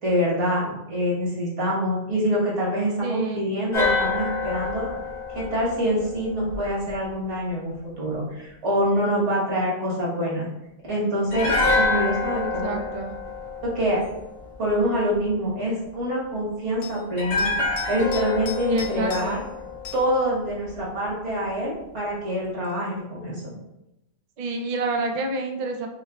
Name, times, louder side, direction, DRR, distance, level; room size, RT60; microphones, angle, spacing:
voice 1, 0.0-4.9 5.3-10.5 10.9-12.8 13.6-14.0 14.6-17.5 17.9-19.4 19.9-23.4, equal, 65° right, -5 dB, 1.6 m, -25 dB
voice 2, 3.0-3.5 12.6-13.1 18.7-19.4 24.4-25.9, right 3 dB, 85° right, 3 dB, 0.3 m, -28 dB
sound 1, 3.7-6.9 11.3-14.5 17.2-20.4 20.7-20.8, left 3 dB, 90° left, 1.6 m, -27 dB
sound 2, 14.0-14.2 16.8-17.0 17.4-19.5 19.8-20.1 22.6-22.7, left 9 dB, 65° left, 0.9 m, -39 dB
6.1 x 2.2 x 2.3 m, 0.91 s
omnidirectional pair, 1.3 m